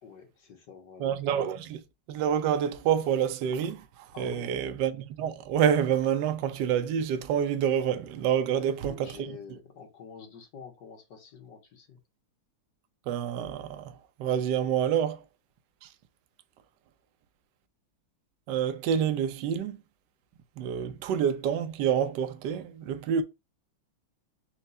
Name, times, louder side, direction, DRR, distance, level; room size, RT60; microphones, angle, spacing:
voice 1, 0.0-1.1 4.1-4.6 8.6-12.0, left 6 dB, 60° left, 1.7 m, -47 dB
voice 2, 1.0-1.8 2.1-3.8 4.2-9.1 13.1-13.9 14.2-15.2 15.8-15.9 18.5-19.8 20.6-23.2, right 8 dB, 75° right, 1.1 m, -27 dB
4.4 x 2.4 x 4.0 m
omnidirectional pair, 2.3 m